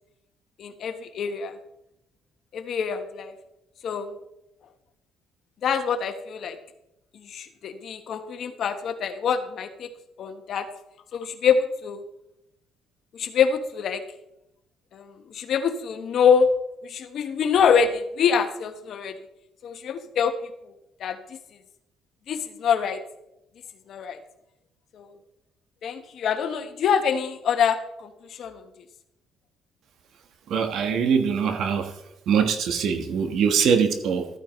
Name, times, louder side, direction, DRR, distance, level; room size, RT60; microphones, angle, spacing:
voice 1, 0.6-1.6 2.5-3.3 3.8-4.2 5.6-6.6 7.1-9.9 10.2-10.7 11.1-12.0 13.1-14.0 14.9-16.5 16.8-19.1 19.6-20.7 21.0-21.4 22.3-23.0 23.9-24.2 24.9-25.1 25.8-28.6, left 7 dB, 60° left, 8 dB, 1.2 m, -25 dB
voice 2, 30.5-31.9 32.3-34.3, right 6 dB, 70° right, 7 dB, 1.3 m, -22 dB
13.5 x 9.2 x 3.1 m, 0.84 s
cardioid pair, 95°, 0 cm